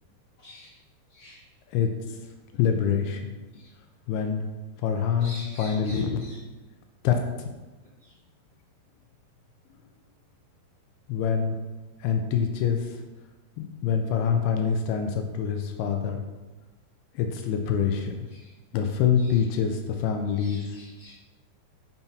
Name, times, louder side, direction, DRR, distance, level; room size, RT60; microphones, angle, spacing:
voice 1, 0.4-0.8 1.1-1.5 3.5-3.7 5.2-6.4 8.0-8.2 18.2-18.5 19.1-19.5 20.2-21.1, left 1 dB, 55° left, -9 dB, 1.3 m, -47 dB
voice 2, 2.5-3.3 4.1-4.5 4.8-5.3 5.6-6.2 7.0-7.5 11.1-11.6 12.0-13.0 13.6-16.2 17.2-18.3 18.7-20.6, left 7 dB, 80° left, 5 dB, 2.3 m, -25 dB
7.2 x 5.7 x 2.7 m, 1.2 s
omnidirectional pair, 4.9 m